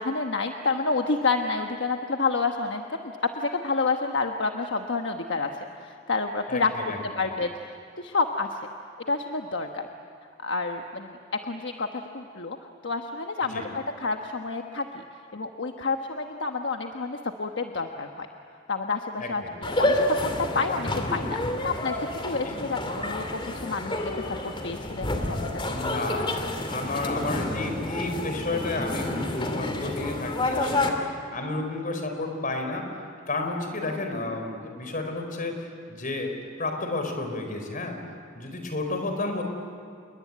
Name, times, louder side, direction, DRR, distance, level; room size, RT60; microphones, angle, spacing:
voice 1, 0.0-5.5 5.8-6.7 7.0-7.7 8.0-8.6 9.1-9.9 10.4-12.6 12.8-15.0 15.3-18.3 18.7-21.4 21.6-24.0 24.4-25.5, left 3 dB, 65° left, 4 dB, 1.2 m, -29 dB
voice 2, 6.5-7.0 13.5-13.6 19.2-19.5 22.3-22.6 25.7-38.0 38.3-39.4, left 2 dB, 45° left, 5 dB, 4.3 m, -32 dB
sound 1, 19.6-30.9, left 1 dB, 25° left, 2.6 m, -29 dB
28.0 x 22.0 x 9.5 m, 2.4 s
head